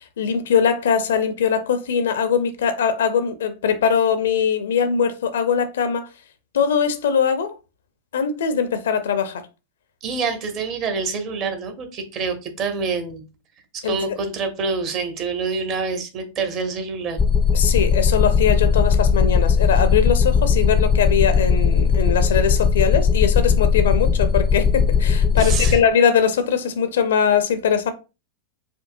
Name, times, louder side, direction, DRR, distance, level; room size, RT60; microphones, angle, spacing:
voice 1, 0.2-6.1 6.5-7.6 8.1-9.4 13.8-14.0 17.5-27.9, left 7 dB, 60° left, 0.5 m, -21 dB
voice 2, 10.0-13.2 13.7-17.2 25.4-25.8, right 4 dB, 35° right, 0.8 m, -26 dB
sound 1, 17.2-25.8, left 6 dB, 15° left, 0.5 m, -18 dB
4.5 x 2.6 x 2.5 m
figure-of-eight pair, 90°, 0 cm